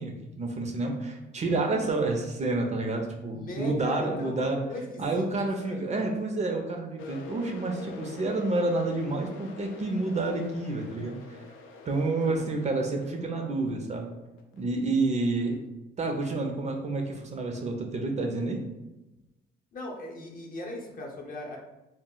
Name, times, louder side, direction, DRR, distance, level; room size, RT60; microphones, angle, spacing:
voice 1, 0.0-4.6 5.0-11.4 11.9-14.1 14.5-15.6 16.0-18.6, right 2 dB, 35° right, 2 dB, 0.4 m, -29 dB
voice 2, 3.3-6.0 12.0-12.5 19.7-21.6, left 2 dB, 45° left, -1 dB, 0.7 m, -39 dB
sound 1, 7.0-14.6, left 3 dB, 85° left, 0.4 m, -45 dB
2.1 x 2.0 x 3.7 m, 0.99 s
cardioid pair, 90°, 20 cm